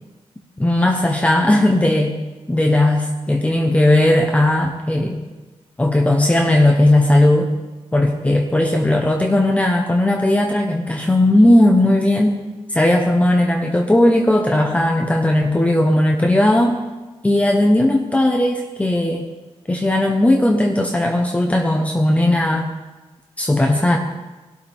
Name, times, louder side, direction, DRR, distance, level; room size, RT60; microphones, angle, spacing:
voice 1, 0.6-2.2 2.5-5.2 5.8-7.5 7.9-12.3 12.7-16.8 17.2-19.3 19.7-22.7 23.4-24.0, left 1 dB, 10° left, 1 dB, 1.2 m, -16 dB
22.0 x 12.5 x 3.7 m, 1.2 s
wide cardioid pair, 130°, 11 cm